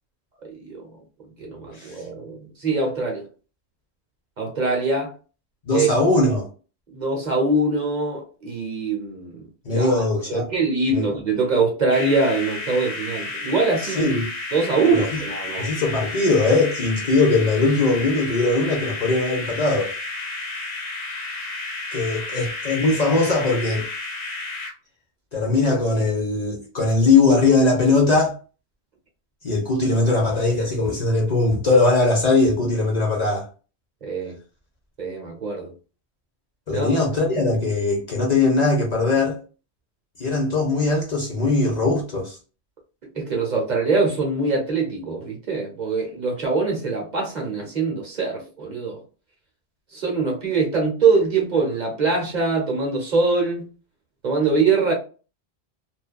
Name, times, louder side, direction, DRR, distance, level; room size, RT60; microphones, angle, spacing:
voice 1, 0.4-0.9 1.4-3.3 4.4-5.1 5.7-5.9 6.9-9.4 9.7-14.1 14.5-15.7 34.0-34.4 35.0-35.7 36.7-37.0 43.1-49.0 49.9-53.7 54.2-54.9, right 3 dB, 45° right, 0.8 m, -23 dB
voice 2, 5.7-6.5 9.7-10.5 10.9-11.0 14.0-14.3 14.9-15.2 15.6-19.9 21.9-23.9 25.3-28.3 29.4-33.5 36.7-39.4 40.2-42.4, left 3 dB, 45° left, 0.7 m, -20 dB
sound 1, 11.9-24.7, left 3 dB, 75° left, 1.2 m, -32 dB
2.6 x 2.3 x 2.2 m
omnidirectional pair, 1.1 m